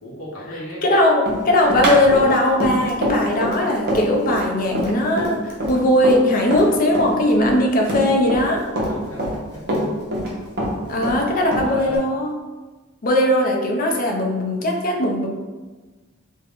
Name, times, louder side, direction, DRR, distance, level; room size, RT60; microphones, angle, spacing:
voice 1, 0.0-0.8 8.8-10.1 10.6-12.1, equal, 80° left, -7 dB, 0.9 m, -36 dB
voice 2, 0.8-8.7 10.9-12.3 13.0-15.3, left 1 dB, 45° left, 1 dB, 0.4 m, -19 dB
Run, 1.3-6.7 6.9-8.5 8.8-10.3 10.6-12.0, equal, 50° right, 0.7 m, -24 dB
2.4 x 2.1 x 3.5 m, 1.3 s
head